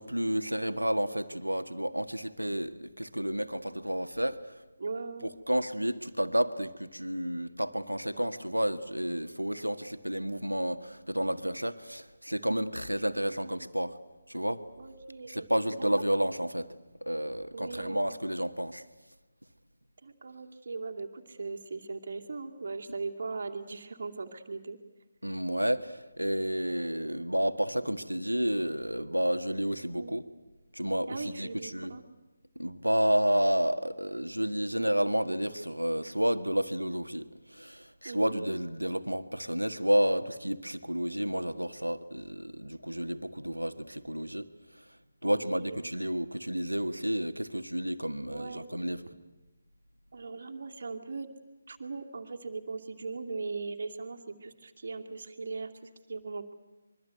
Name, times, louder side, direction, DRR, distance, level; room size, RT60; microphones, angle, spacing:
voice 1, 0.0-4.6 5.2-14.0 14.3-14.6 15.3-18.8 25.2-30.2 30.7-31.9 32.5-44.8 45.2-49.0, equal, 85° right, 10 dB, 1.6 m, -31 dB
voice 2, 4.8-5.3 13.4-13.5 14.8-15.5 15.7-15.9 17.5-18.1 20.0-24.8 27.7-27.8 29.8-30.1 31.1-32.0 38.0-38.4 45.2-45.8 48.3-48.7 50.1-51.3 51.7-56.5, right 4 dB, 45° right, 3 dB, 2.7 m, -39 dB
25.0 x 23.5 x 9.4 m, 1.1 s
figure-of-eight pair, 150°, 0 cm